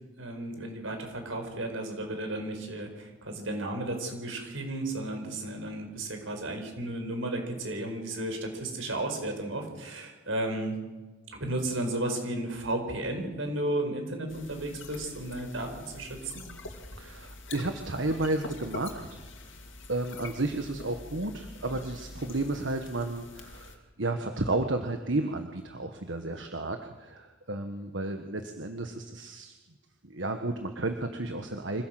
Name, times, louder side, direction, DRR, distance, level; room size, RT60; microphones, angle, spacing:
voice 1, 0.2-10.8 11.3-16.2, right 1 dB, 85° right, 4 dB, 5.0 m, -33 dB
sound 1, 14.3-23.8, left 2 dB, 70° left, 2.9 m, -45 dB
voice 2, 17.0-19.5 19.9-29.5 30.0-31.8, right 2 dB, 70° right, 6 dB, 1.5 m, -32 dB
25.5 x 16.0 x 7.8 m, 1.2 s
head